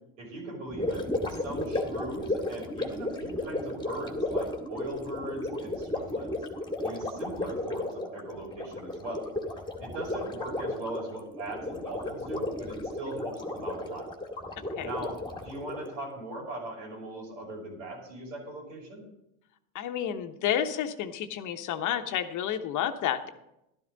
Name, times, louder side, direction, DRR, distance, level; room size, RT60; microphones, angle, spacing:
voice 1, 0.2-6.3 6.8-9.3 9.8-14.1 14.8-15.2 15.4-19.0, right 2 dB, 85° right, -1 dB, 5.7 m, -39 dB
Gurgling, 0.7-16.0, left 2 dB, 10° left, 1.9 m, -34 dB
voice 2, 14.6-14.9 19.7-23.3, left 10 dB, 50° left, 8 dB, 1.2 m, -30 dB
12.0 x 12.0 x 4.0 m, 0.84 s
supercardioid pair, 95°, 39 cm